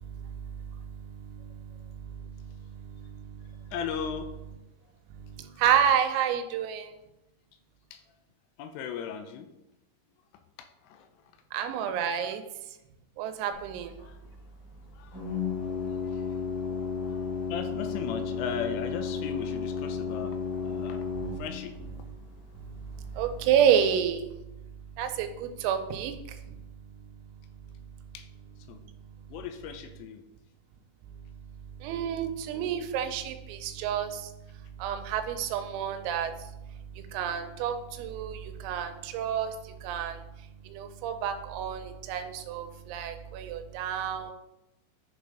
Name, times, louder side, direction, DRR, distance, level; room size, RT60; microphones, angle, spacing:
voice 1, 0.0-3.7 5.1-7.0 11.5-12.8 13.2-14.0 21.2-21.4 22.0-22.2 22.6-28.1 28.7-29.4 31.0-44.3, right 8 dB, 90° right, 7 dB, 3.5 m, -31 dB
voice 2, 1.5-1.9 3.7-4.3 7.9-8.0 8.6-9.5 10.6-11.1 14.0-14.2 14.9-15.2 15.6-16.3 16.7-16.8 17.1-17.2 17.5-20.4 20.6-21.0 21.4-21.8 28.1-28.3 28.7-28.8 29.3-30.2, left 7 dB, 85° left, 7 dB, 3.2 m, -37 dB
Organ, 13.5-23.7, left 6 dB, 60° left, 4.5 m, -34 dB
10.5 x 4.1 x 4.9 m, 0.92 s
omnidirectional pair, 5.9 m